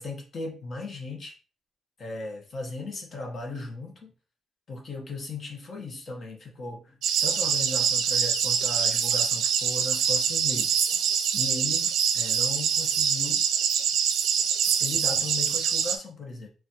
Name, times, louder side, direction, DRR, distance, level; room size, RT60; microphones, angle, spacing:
voice 1, 0.0-1.4 2.0-4.1 4.7-10.7 11.3-13.4 14.6-16.5, left 3 dB, 45° left, 1 dB, 0.9 m, -37 dB
sound 1, 7.0-16.0, right 8 dB, 80° right, 0.4 m, -25 dB
4.0 x 2.2 x 2.8 m, 0.35 s
cardioid pair, 90°, 0 cm